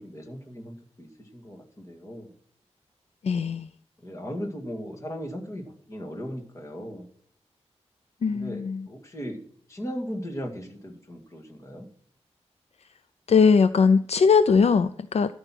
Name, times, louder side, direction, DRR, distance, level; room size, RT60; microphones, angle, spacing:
voice 1, 0.0-2.3 4.0-7.1 8.3-9.4 9.7-11.9, equal, 25° left, 1 dB, 2.1 m, -37 dB
voice 2, 3.2-3.7 8.2-8.9 13.3-15.3, left 5 dB, 65° left, 13 dB, 0.4 m, -20 dB
13.0 x 5.6 x 6.0 m, 0.64 s
wide cardioid pair, 140°, 11 cm